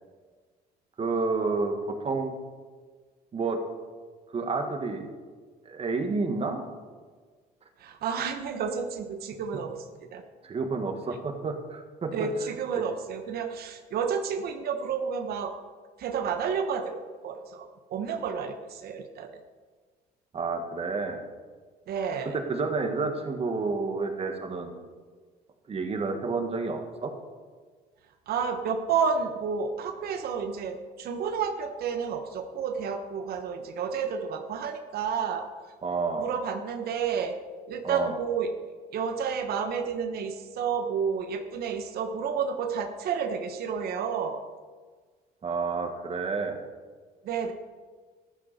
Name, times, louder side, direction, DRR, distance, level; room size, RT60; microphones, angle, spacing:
voice 1, 1.0-2.3 3.3-3.6 4.3-5.1 5.7-6.6 10.4-12.3 12.7-12.8 20.3-21.2 22.2-24.7 25.7-27.1 35.8-36.3 37.8-38.2 45.4-46.6, right 4 dB, 35° right, 5 dB, 1.9 m, -30 dB
voice 2, 7.8-10.2 12.1-15.5 16.0-19.4 21.9-22.4 28.3-35.5 36.2-37.4 37.7-38.5 38.9-44.4 47.2-47.5, right 6 dB, 65° right, 6 dB, 1.2 m, -30 dB
13.5 x 12.5 x 4.3 m, 1.5 s
cardioid pair, 110°, 17 cm